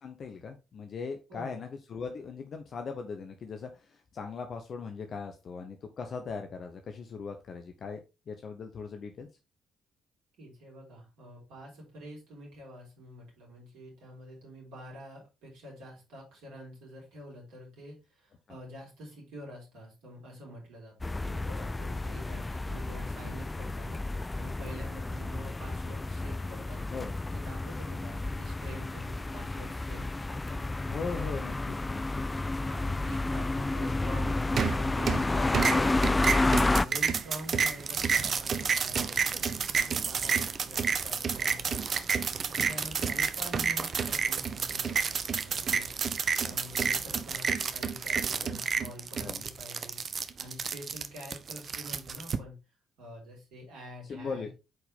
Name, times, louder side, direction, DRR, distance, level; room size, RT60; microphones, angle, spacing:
voice 1, 0.0-8.0 8.3-9.3 18.5-18.6 26.9-27.1 30.8-32.2 35.1-36.0 49.2-49.4 54.0-54.5, left 5 dB, 45° left, 6 dB, 0.8 m, -39 dB
voice 2, 1.3-1.6 10.4-27.0 27.3-31.3 32.5-45.9 46.4-52.6 53.0-54.5, equal, 65° right, -2 dB, 3.9 m, -47 dB
sound 1, 21.0-36.9, left 2 dB, 20° left, 0.4 m, -31 dB
sound 2, 34.6-35.3 35.5-52.4, right 6 dB, 45° right, 0.7 m, -30 dB
7.9 x 4.7 x 3.5 m, 0.28 s
figure-of-eight pair, 45°, 0 cm